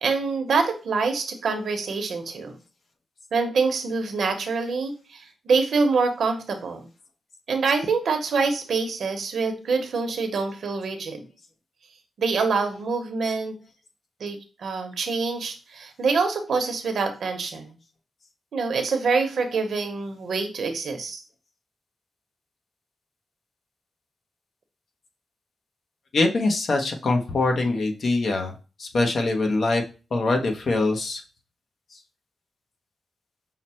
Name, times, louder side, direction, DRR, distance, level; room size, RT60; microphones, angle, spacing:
voice 1, 0.0-2.6 3.3-6.9 7.5-11.2 12.2-13.5 14.2-17.8 18.5-21.2, right 4 dB, 70° right, 6 dB, 0.9 m, -25 dB
voice 2, 26.1-28.5 28.8-29.8 30.1-31.2, left 2 dB, 55° left, 3 dB, 0.8 m, -23 dB
5.8 x 2.1 x 4.2 m, 0.34 s
wide cardioid pair, 105°, 0 cm